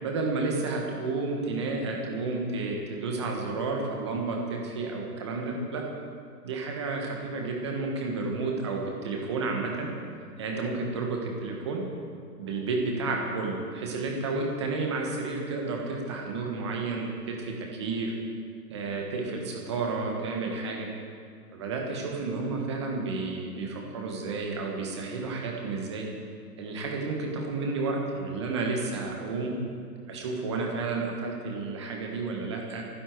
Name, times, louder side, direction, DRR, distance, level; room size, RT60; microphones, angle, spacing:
voice 1, 0.0-5.9 6.4-9.9 10.4-11.8 12.4-18.1 18.7-20.9 21.5-26.1 26.6-29.5 30.1-32.8, right 3 dB, 15° right, 0 dB, 1.3 m, -31 dB
27.5 x 10.0 x 4.6 m, 2.2 s
hypercardioid pair, 175°, 48 cm